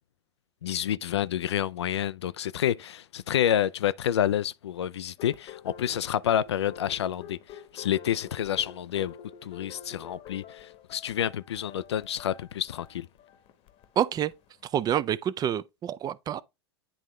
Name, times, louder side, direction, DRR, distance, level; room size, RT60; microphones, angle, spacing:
voice 1, 0.6-9.2 9.4-13.1, left 10 dB, 80° left, 0.4 m, -29 dB
sound 1, 5.2-15.0, left 8 dB, 45° left, 1.0 m, -48 dB
voice 2, 14.0-14.3 14.7-16.4, right 10 dB, 30° right, 0.4 m, -27 dB
10.0 x 3.6 x 3.1 m
hypercardioid pair, 90°, 14 cm